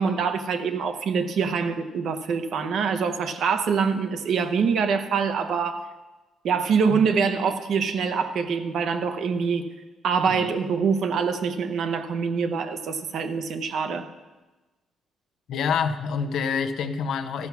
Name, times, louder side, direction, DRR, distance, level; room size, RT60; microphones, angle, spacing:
voice 1, 0.0-5.8 6.4-9.6 10.0-14.1, right 5 dB, 70° right, 8 dB, 0.8 m, -25 dB
voice 2, 15.5-17.5, left 6 dB, 75° left, 8 dB, 0.7 m, -27 dB
13.5 x 5.8 x 5.8 m, 1.2 s
cardioid pair, 90°, 0 cm